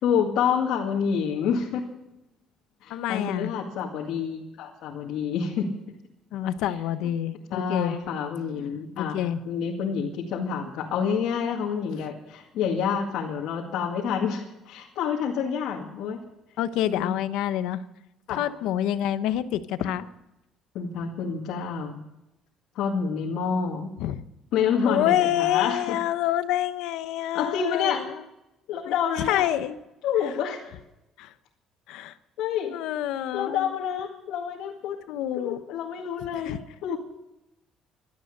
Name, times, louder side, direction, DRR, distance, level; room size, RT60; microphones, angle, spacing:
voice 1, 0.0-1.8 2.8-5.7 7.5-9.2 9.5-16.2 16.9-17.1 18.3-18.4 20.7-22.0 22.8-23.9 24.5-26.0 27.3-28.0 28.7-29.5 30.0-30.6 32.4-32.8 33.3-35.0 35.4-37.0, left 7 dB, 70° left, -1 dB, 2.1 m, -28 dB
voice 2, 2.9-3.5 6.3-8.0 9.0-9.4 16.6-17.8 18.3-20.1 24.0-24.2 24.8-28.2 28.8-29.8 30.2-30.3 31.2-31.3 31.9-32.1 32.7-33.7 35.1-35.6 36.3-36.6, left 12 dB, 85° left, 12 dB, 1.0 m, -27 dB
17.0 x 12.0 x 6.7 m, 0.93 s
cardioid pair, 155°, 0 cm